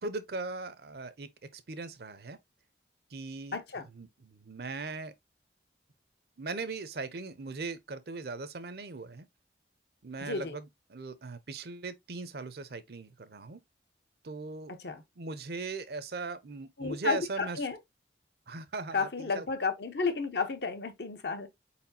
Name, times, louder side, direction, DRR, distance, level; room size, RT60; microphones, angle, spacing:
voice 1, 0.0-2.4 3.1-3.6 3.9-5.1 6.4-9.3 10.0-13.6 14.2-14.7 15.2-17.6 18.5-19.5, right 3 dB, 55° right, 0.6 m, -39 dB
voice 2, 3.5-3.8 10.2-10.5 14.8-15.0 16.8-17.8 18.9-21.5, left 4 dB, 60° left, 0.8 m, -32 dB
4.4 x 4.2 x 2.6 m
head